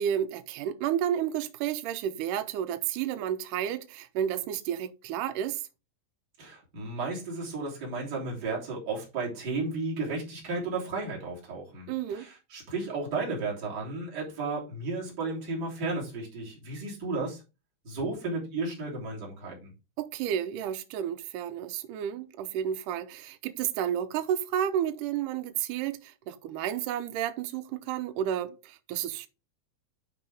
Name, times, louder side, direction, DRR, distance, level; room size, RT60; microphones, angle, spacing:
voice 1, 0.0-5.6 11.9-12.3 20.0-29.3, right 10 dB, 85° right, 1.9 m, -31 dB
voice 2, 6.4-17.4 17.8-19.7, right 3 dB, 25° right, 3.2 m, -33 dB
10.5 x 4.8 x 3.5 m
omnidirectional pair, 4.6 m